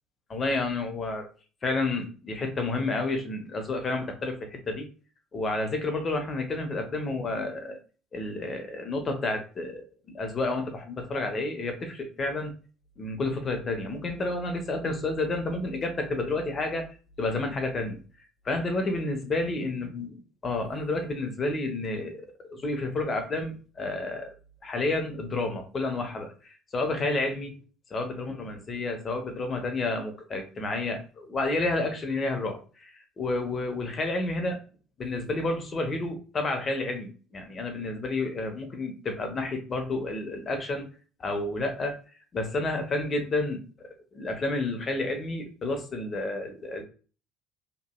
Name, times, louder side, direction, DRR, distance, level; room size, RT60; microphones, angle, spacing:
voice 1, 0.3-1.3 1.6-4.9 5.3-7.8 8.1-12.5 13.0-16.9 17.2-18.0 18.4-20.1 20.4-24.3 24.6-27.6 27.9-34.6 35.0-40.9 41.2-42.0 42.3-46.9, left 2 dB, 40° left, 5 dB, 0.9 m, -30 dB
3.0 x 2.6 x 2.2 m, 0.37 s
hypercardioid pair, 60°, 0 cm